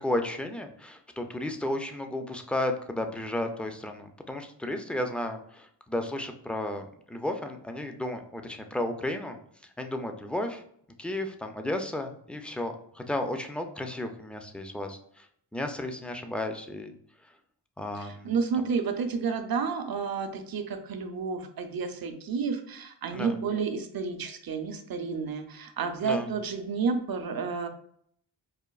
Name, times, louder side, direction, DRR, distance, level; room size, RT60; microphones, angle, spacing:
voice 1, 0.0-9.4 9.8-10.6 11.0-15.3 15.5-16.9 17.8-18.3 23.1-23.3 26.0-26.3, left 1 dB, 5° left, 5 dB, 0.3 m, -33 dB
voice 2, 17.9-27.7, right 5 dB, 60° right, 7 dB, 0.6 m, -31 dB
4.9 x 2.5 x 2.3 m, 0.65 s
wide cardioid pair, 100°, 42 cm